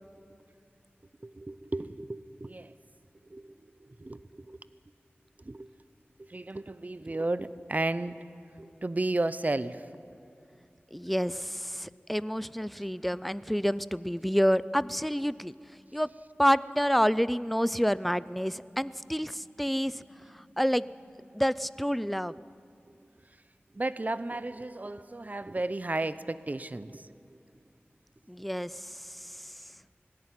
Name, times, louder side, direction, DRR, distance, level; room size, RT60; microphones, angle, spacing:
voice 1, 1.2-2.7 3.3-4.6 5.4-5.7 6.2-8.2 8.6-9.9 23.7-27.4, right 2 dB, 40° right, 15 dB, 0.7 m, -34 dB
voice 2, 10.9-15.5 15.9-16.1 16.4-20.0 20.3-20.9 21.3-22.4 28.3-29.5, equal, ahead, 17 dB, 0.4 m, -28 dB
sound 1, 17.7-21.6, equal, 55° right, 4.7 m, -61 dB
19.5 x 16.5 x 9.6 m, 2.5 s
wide cardioid pair, 50°, 4 cm